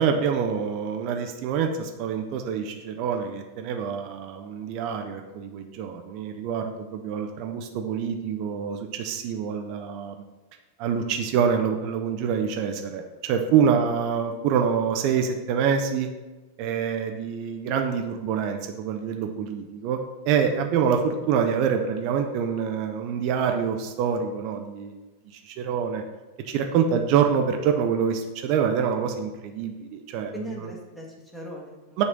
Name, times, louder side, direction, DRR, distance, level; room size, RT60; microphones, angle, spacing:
voice 1, 0.0-10.2 10.8-16.1 16.6-20.0 20.2-25.0 25.4-26.0 26.5-30.7 32.0-32.1, right 7 dB, 45° right, 4 dB, 0.6 m, -26 dB
voice 2, 30.3-32.0, left 1 dB, 5° left, -3 dB, 1.4 m, -40 dB
7.6 x 3.1 x 5.2 m, 1.2 s
figure-of-eight pair, 90°, 0 cm